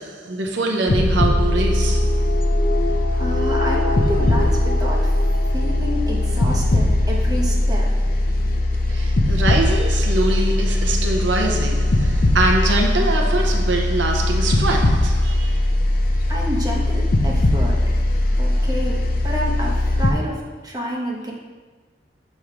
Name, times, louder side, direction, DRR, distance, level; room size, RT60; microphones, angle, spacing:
voice 1, 0.0-2.3 8.9-15.6, right 2 dB, 80° right, 0.7 m, -23 dB
sound 1, 0.9-20.1, left 1 dB, 50° left, 0.6 m, -19 dB
voice 2, 3.2-5.1 5.5-7.9 16.3-17.8 18.4-21.3, equal, 20° right, 1.0 m, -29 dB
7.0 x 3.1 x 4.9 m
head